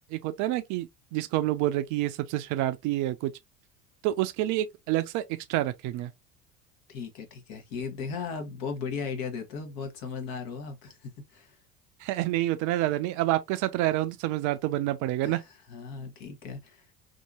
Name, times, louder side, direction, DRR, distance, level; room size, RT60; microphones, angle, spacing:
voice 1, 0.0-3.3 4.0-6.1 12.0-15.4, right 15 dB, 50° right, 0.4 m, -28 dB
voice 2, 6.9-11.6 15.2-16.9, left 5 dB, 55° left, 1.0 m, -37 dB
2.7 x 2.6 x 2.3 m
hypercardioid pair, 65°, 41 cm